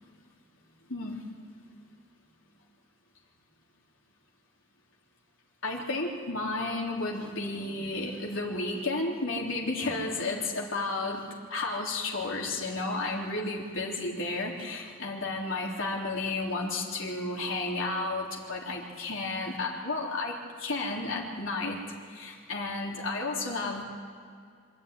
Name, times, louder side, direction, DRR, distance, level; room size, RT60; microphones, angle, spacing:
voice 1, 5.6-21.8 22.1-23.8, left 2 dB, 70° left, -2 dB, 3.5 m, -32 dB
26.0 x 10.5 x 9.6 m, 2.2 s
head